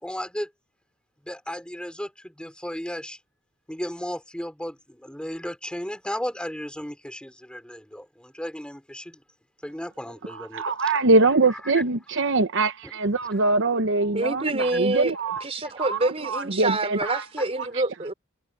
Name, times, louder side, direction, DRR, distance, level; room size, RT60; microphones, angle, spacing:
voice 1, 0.0-0.5 1.2-3.2 3.7-9.2 9.6-10.9 11.7-11.8 12.8-12.9 14.9-15.0 15.6-15.7, equal, 5° left, 4.9 m, -35 dB
voice 2, 10.3-15.4 15.8-17.2, right 3 dB, 60° right, 0.9 m, -23 dB
voice 3, 14.1-15.1 15.4-18.1, right 2 dB, 30° right, 4.4 m, -26 dB
head